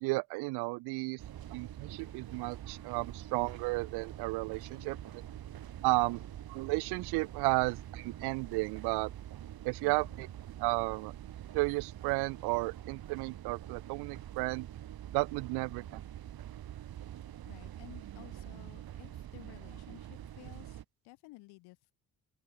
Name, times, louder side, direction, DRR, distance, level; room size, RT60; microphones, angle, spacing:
voice 1, 0.0-1.2 1.5-5.0 5.8-6.2 6.5-9.1 9.6-10.3 10.6-11.1 11.5-14.7 15.1-15.8, right 25 dB, 85° right, 0.9 m, -33 dB
sound 1, 1.2-20.8, right 11 dB, 70° right, 5.1 m, -45 dB
voice 2, 4.7-5.0 6.0-6.3 9.8-10.3 15.5-16.0 17.4-21.9, left 22 dB, 85° left, 5.3 m, -55 dB
open air
supercardioid pair, 55°, 38 cm